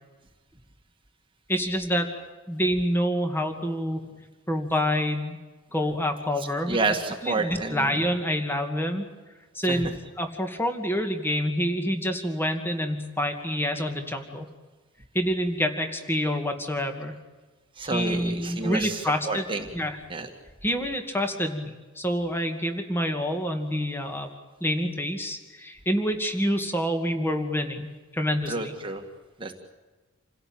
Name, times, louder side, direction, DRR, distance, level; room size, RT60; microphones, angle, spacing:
voice 1, 1.5-2.1 2.5-4.0 4.5-5.4 5.7-6.8 7.2-9.1 9.5-9.9 10.2-14.5 15.1-17.2 17.9-19.5 19.7-20.0 20.6-24.3 24.6-28.7, equal, 10° left, 5 dB, 2.4 m, -27 dB
voice 2, 6.7-7.9 9.7-9.8 17.8-19.7 20.1-20.3 28.5-29.0 29.4-29.5, right 3 dB, 25° right, 3 dB, 1.9 m, -29 dB
28.5 x 17.0 x 8.9 m, 1.3 s
head